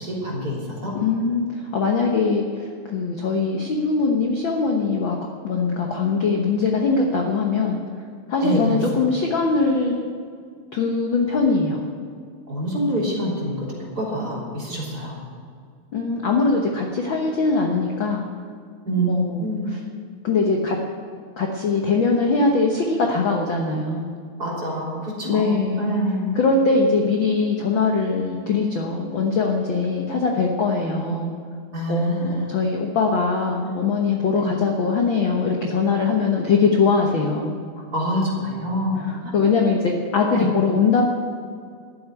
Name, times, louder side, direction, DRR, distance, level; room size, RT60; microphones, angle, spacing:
voice 1, 0.0-0.9 8.4-8.8 12.5-15.2 18.9-19.7 24.4-26.3 30.9-31.0 31.7-32.5 33.6-33.8 34.3-34.5 37.9-39.3 40.3-40.5, equal, 30° right, -5 dB, 3.8 m, -26 dB
voice 2, 0.9-5.2 5.4-7.8 8.3-10.0 10.7-11.8 15.9-18.2 19.0-19.5 20.2-20.8 21.4-24.1 25.2-25.9 26.3-31.3 31.9-37.5 39.0-41.0, left 4 dB, 55° left, 1 dB, 1.5 m, -21 dB
13.0 x 7.8 x 9.7 m, 2.1 s
omnidirectional pair, 3.4 m